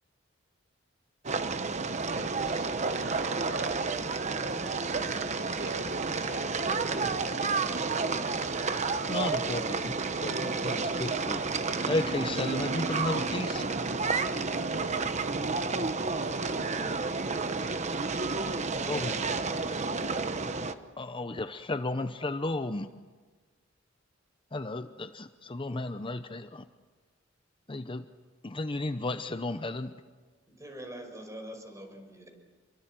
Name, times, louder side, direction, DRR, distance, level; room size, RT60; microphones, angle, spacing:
sound 1, 1.2-20.7, right 4 dB, 35° right, 1.0 m, -31 dB
voice 1, 2.1-4.4 5.4-6.7, right 3 dB, 55° right, 6 dB, 1.4 m, -41 dB
voice 2, 7.0-7.5 9.1-11.4 11.9-13.7 18.9-19.1 21.0-22.9 24.5-26.7 27.7-28.0 28.4-29.9, left 2 dB, 25° left, 10 dB, 0.7 m, -34 dB
voice 3, 18.4-19.6 30.5-32.3, right 1 dB, 15° right, 5 dB, 5.2 m, -44 dB
27.5 x 23.0 x 7.6 m, 1.4 s
head